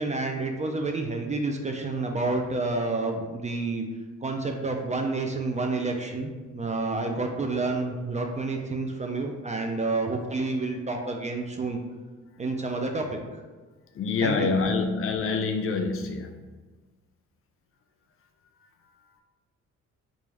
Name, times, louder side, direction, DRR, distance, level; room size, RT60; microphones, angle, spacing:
voice 1, 0.0-3.8 4.2-11.8 12.4-13.4 14.2-14.5, right 3 dB, 25° right, 3 dB, 0.4 m, -29 dB
voice 2, 13.9-16.3, left 4 dB, 45° left, 4 dB, 0.4 m, -26 dB
3.4 x 2.5 x 3.2 m, 1.3 s
cardioid pair, 90°, 30 cm